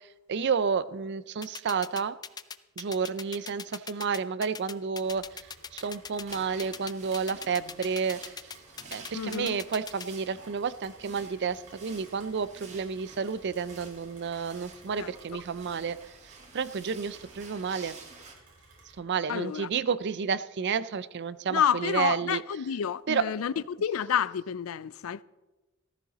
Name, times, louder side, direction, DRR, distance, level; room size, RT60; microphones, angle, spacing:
voice 1, 0.3-2.2 2.8-5.4 5.7-8.3 8.9-16.0 16.5-18.0 19.0-22.4 23.1-23.2, right 6 dB, 55° right, 0.5 m, -31 dB
sound 1, 1.4-10.1, left 6 dB, 20° left, 0.5 m, -40 dB
Rain, 5.0-19.0, right 3 dB, 90° right, 5.2 m, -56 dB
sound 2, 6.3-18.4, right 4 dB, 35° right, 2.0 m, -51 dB
voice 2, 9.1-9.6 15.0-15.1 19.3-19.7 21.5-25.2, left 8 dB, 85° left, 0.4 m, -29 dB
15.0 x 14.0 x 4.1 m
head